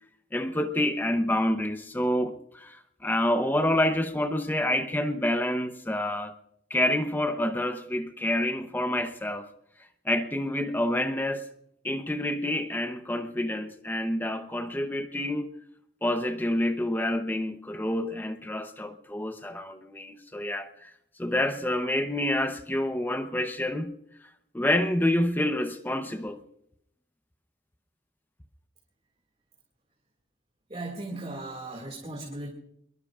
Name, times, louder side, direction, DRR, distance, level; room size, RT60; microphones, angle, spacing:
voice 1, 0.3-6.3 6.7-9.5 10.0-11.5 11.8-15.5 16.0-20.9 21.2-23.9 24.5-26.4, left 1 dB, 10° left, 0.8 m, -28 dB
voice 2, 30.7-32.5, right 2 dB, 35° right, 2.2 m, -37 dB
25.0 x 22.0 x 2.5 m
head